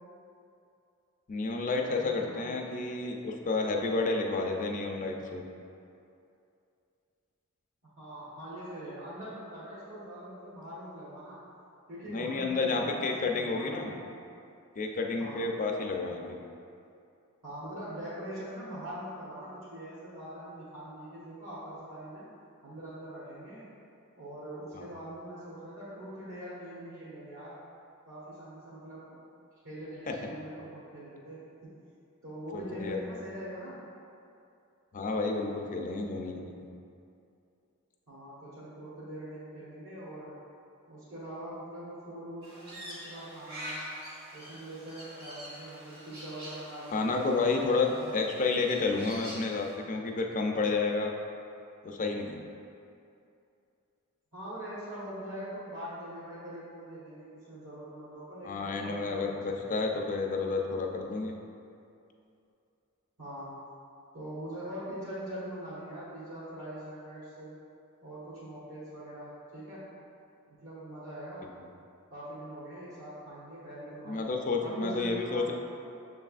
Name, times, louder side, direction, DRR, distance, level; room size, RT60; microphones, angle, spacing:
voice 1, 1.3-5.4 12.1-13.9 14.8-16.4 24.8-24.9 30.1-30.2 32.5-33.0 34.9-36.7 46.9-51.1 51.8-52.4 58.4-61.3 74.1-75.5, left 3 dB, 35° left, 1 dB, 0.4 m, -30 dB
voice 2, 1.9-2.5 8.0-11.4 11.9-14.0 15.2-15.5 17.4-22.2 22.6-23.6 24.2-27.6 28.1-29.2 29.6-31.8 32.2-33.8 38.1-40.4 40.9-43.9 44.3-47.4 47.9-48.1 54.3-59.8 63.2-63.5 64.1-67.6 68.0-69.9 70.5-71.5 72.1-74.3 74.6-75.5, right 1 dB, 75° right, -11 dB, 1.1 m, -43 dB
Crow, 42.4-49.8, equal, 50° right, 1.2 m, -46 dB
6.8 x 3.3 x 2.4 m, 2.6 s
head